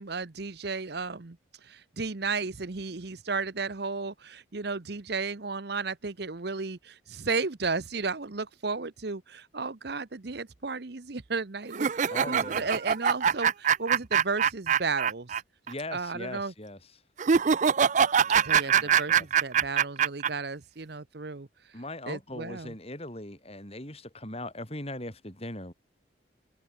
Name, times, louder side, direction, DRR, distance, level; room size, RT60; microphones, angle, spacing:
voice 1, 0.0-1.4 1.6-15.4 15.9-16.5 18.4-21.5 22.1-22.7, right 4 dB, 55° right, 0.9 m, -34 dB
sound 1, 11.7-15.4 15.7-15.8 17.2-20.3, right 7 dB, 40° right, 0.4 m, -23 dB
voice 2, 12.1-12.7 15.7-16.9 18.2-19.3 21.7-25.7, left 1 dB, 30° left, 6.8 m, -40 dB
head